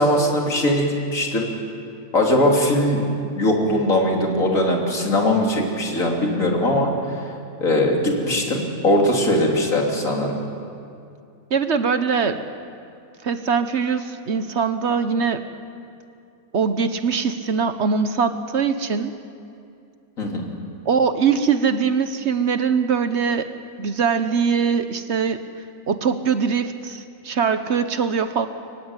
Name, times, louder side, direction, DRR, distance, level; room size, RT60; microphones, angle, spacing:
voice 1, 0.0-1.5 2.1-3.0 3.3-6.9 7.6-10.3 20.2-20.4, left 1 dB, 70° left, 0 dB, 3.5 m, -20 dB
voice 2, 11.5-12.5 13.2-15.4 16.5-19.1 20.9-23.5 23.8-25.4 25.9-28.5, right 6 dB, 55° right, 9 dB, 1.2 m, -22 dB
24.0 x 16.0 x 9.7 m, 2.4 s
omnidirectional pair, 1.5 m